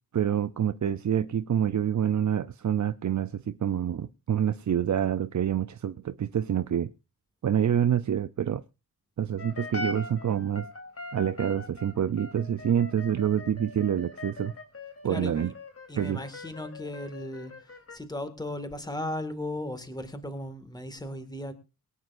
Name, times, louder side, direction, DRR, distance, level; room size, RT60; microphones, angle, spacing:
voice 1, 0.1-6.9 7.4-8.6 9.2-10.7 11.1-14.5 15.0-15.5 16.0-16.2, right 9 dB, 55° right, 0.6 m, -27 dB
sound 1, 9.4-18.0, left 2 dB, 40° left, 3.5 m, -41 dB
voice 2, 15.0-15.4 15.9-17.5 17.9-21.5, left 1 dB, 10° left, 2.0 m, -36 dB
22.5 x 9.4 x 2.6 m
wide cardioid pair, 110°, 35 cm